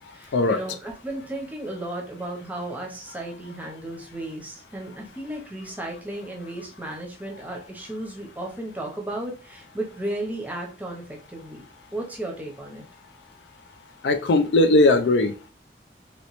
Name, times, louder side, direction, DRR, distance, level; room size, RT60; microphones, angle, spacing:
voice 1, 0.1-11.6 11.9-12.8, right 1 dB, 10° right, 0.6 m, -34 dB
voice 2, 14.0-15.3, left 2 dB, 85° left, 0.4 m, -18 dB
2.9 x 2.9 x 2.9 m
head